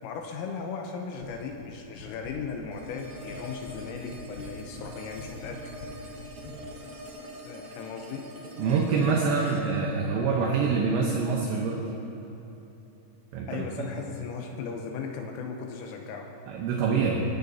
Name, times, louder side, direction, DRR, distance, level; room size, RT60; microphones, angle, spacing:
voice 1, 0.0-5.6 7.5-8.3 13.5-16.3, left 5 dB, 80° left, 2 dB, 3.4 m, -37 dB
sound 1, 1.2-1.7 2.0-2.7 3.0-3.8 4.1-6.6, left 3 dB, 60° left, 2.8 m, -44 dB
sound 2, 2.7-11.7, equal, 55° right, 2.3 m, -44 dB
voice 2, 8.6-11.8 13.3-13.6 16.5-17.2, right 5 dB, 75° right, -1 dB, 2.9 m, -25 dB
21.5 x 15.5 x 2.8 m, 2.9 s
omnidirectional pair, 6.0 m